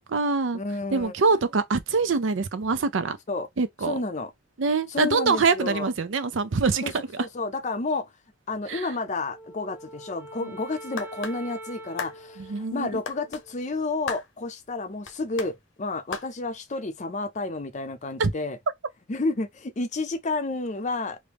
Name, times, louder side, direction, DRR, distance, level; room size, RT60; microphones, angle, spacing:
voice 1, 0.0-0.6 0.9-3.2 3.6-4.0 4.6-6.9 8.7-8.9 12.4-12.9 18.2-18.3, right 4 dB, 80° right, 0.5 m, -24 dB
voice 2, 0.5-1.1 3.3-3.5 3.9-4.3 4.9-5.9 6.8-8.1 8.5-18.6 19.1-21.2, left 3 dB, 40° left, 0.5 m, -31 dB
Wind instrument woodwind instrument, 9.3-13.7, right 1 dB, 10° right, 0.6 m, -44 dB
sound 1, 11.0-11.4 12.0-12.2 13.1-13.5 14.1-14.3 15.1-15.5 16.1-16.3, left 5 dB, 80° left, 0.7 m, -34 dB
3.0 x 2.6 x 3.4 m
head